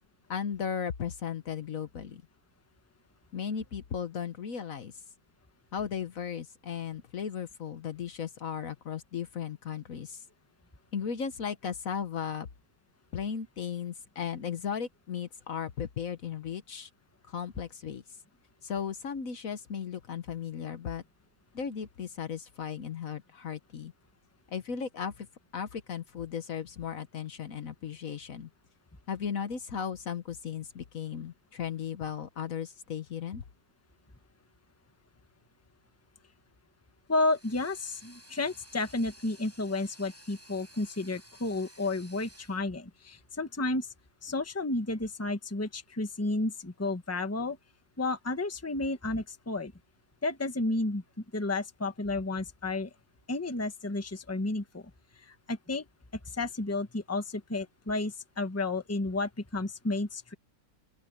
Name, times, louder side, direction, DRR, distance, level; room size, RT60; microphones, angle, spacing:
voice 1, 0.3-2.2 3.3-4.9 5.7-10.2 10.9-12.5 13.1-16.9 17.3-18.0 18.6-21.0 21.5-23.9 24.5-25.3 25.5-28.5 29.1-33.4, left 7 dB, 60° left, 1.4 m, -36 dB
voice 2, 37.1-43.9 44.2-47.6 48.0-49.7 50.2-51.0 51.3-52.9 53.3-54.9 55.2-55.8 56.3-60.3, left 2 dB, 10° left, 1.2 m, -32 dB
sound 1, 37.1-42.6, equal, 10° right, 6.5 m, -55 dB
open air
omnidirectional pair, 1.7 m